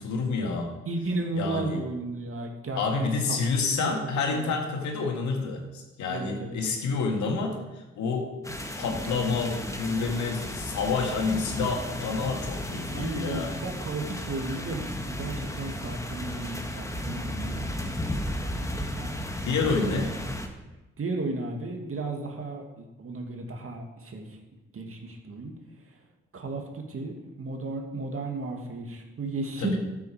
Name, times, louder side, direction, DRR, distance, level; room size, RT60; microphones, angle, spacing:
voice 1, 0.0-0.7 1.4-1.8 2.8-8.3 8.8-13.5 19.4-20.1 29.6-29.8, left 4 dB, 65° left, 2 dB, 2.1 m, -28 dB
voice 2, 0.9-3.9 4.3-4.5 6.1-6.6 12.9-19.1 19.7-20.0 21.0-24.4 24.7-25.5 26.3-29.8, right 2 dB, 45° right, 2 dB, 2.4 m, -34 dB
sound 1, 8.4-20.5, left 1 dB, 10° left, 1.8 m, -34 dB
13.5 x 7.1 x 5.1 m, 1.1 s
hypercardioid pair, 40°, 31 cm